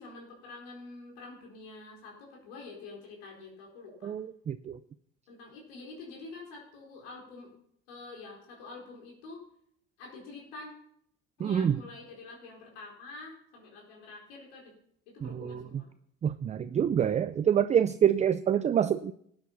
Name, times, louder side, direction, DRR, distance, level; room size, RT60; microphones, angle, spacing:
voice 1, 0.0-4.1 5.3-7.5 7.9-9.4 10.0-10.7 11.4-14.6 15.1-15.9, left 3 dB, 85° left, -1 dB, 4.2 m, -47 dB
voice 2, 4.0-4.8 11.4-11.8 15.2-15.8 16.2-19.1, right 9 dB, 25° right, 12 dB, 0.4 m, -27 dB
13.0 x 8.8 x 5.8 m, 0.69 s
supercardioid pair, 105°, 30 cm